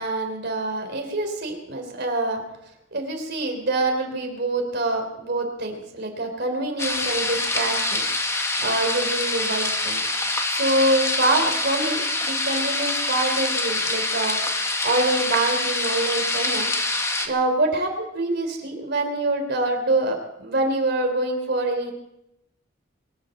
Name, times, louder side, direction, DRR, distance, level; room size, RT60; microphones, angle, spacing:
voice 1, 0.0-2.4 2.9-10.0 10.5-14.6 14.8-16.7 17.3-21.9, right 2 dB, 60° right, 3 dB, 3.6 m, -25 dB
sound 1, 6.8-17.3, left 2 dB, 15° left, 1.6 m, -25 dB
23.5 x 8.5 x 7.1 m, 0.83 s
head